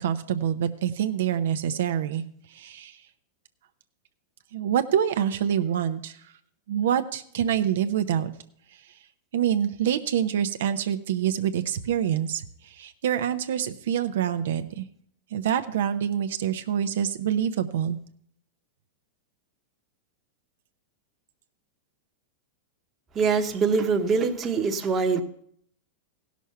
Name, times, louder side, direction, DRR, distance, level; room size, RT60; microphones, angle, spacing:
voice 1, 0.0-2.2 2.5-3.0 4.5-6.2 6.7-8.3 9.3-12.4 12.7-14.8 15.3-18.0, right 9 dB, 75° right, 8 dB, 0.7 m, -26 dB
voice 2, 23.1-25.2, right 5 dB, 25° right, 5 dB, 1.0 m, -23 dB
15.5 x 6.2 x 5.7 m, 0.65 s
supercardioid pair, 140°, 0 cm